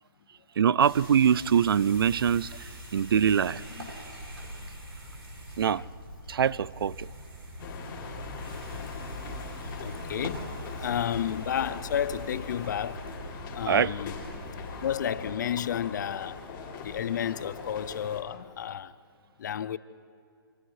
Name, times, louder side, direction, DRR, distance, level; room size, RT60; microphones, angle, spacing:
voice 1, 0.6-3.6 5.6-5.8 6.3-7.1 13.7-13.9, right 8 dB, 70° right, 0.5 m, -24 dB
sound 1, 0.8-15.0, right 1 dB, 90° right, 7.8 m, -43 dB
sound 2, 7.6-18.2, left 4 dB, 25° left, 3.8 m, -41 dB
voice 2, 9.6-13.1 13.5-14.1 14.8-16.4 16.8-19.0 19.4-19.8, left 9 dB, 50° left, 0.7 m, -32 dB
26.0 x 25.5 x 4.8 m
hypercardioid pair, 160°, 12 cm